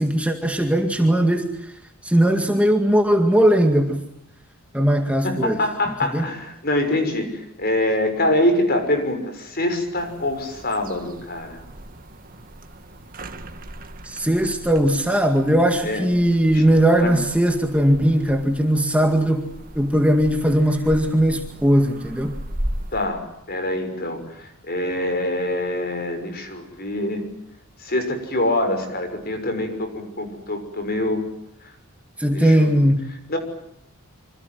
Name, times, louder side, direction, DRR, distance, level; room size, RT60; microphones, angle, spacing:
voice 1, 0.0-1.7 2.0-4.1 4.7-5.6 6.0-6.3 14.0-19.5 19.8-22.4 32.2-33.1, right 1 dB, 5° right, 4 dB, 2.0 m, -19 dB
voice 2, 5.2-11.6 15.8-16.0 16.5-16.6 17.0-17.2 22.9-27.3 27.8-31.2 32.3-32.7 33.3-33.4, left 1 dB, 45° left, 7 dB, 6.3 m, -24 dB
sound 1, 10.0-23.1, right 1 dB, 40° right, 2.1 m, -37 dB
27.5 x 26.0 x 7.9 m, 0.76 s
head